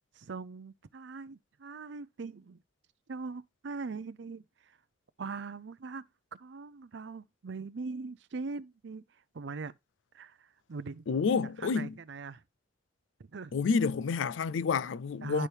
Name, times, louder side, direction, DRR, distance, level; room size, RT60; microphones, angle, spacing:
voice 1, 0.1-2.6 3.1-4.8 5.2-6.1 6.4-9.0 9.3-9.7 10.1-11.1 11.6-12.4 13.2-13.5 15.2-15.5, right 4 dB, 65° right, 0.5 m, -41 dB
voice 2, 11.1-11.9 13.5-15.5, left 5 dB, 75° left, 0.4 m, -29 dB
11.0 x 4.5 x 3.3 m
head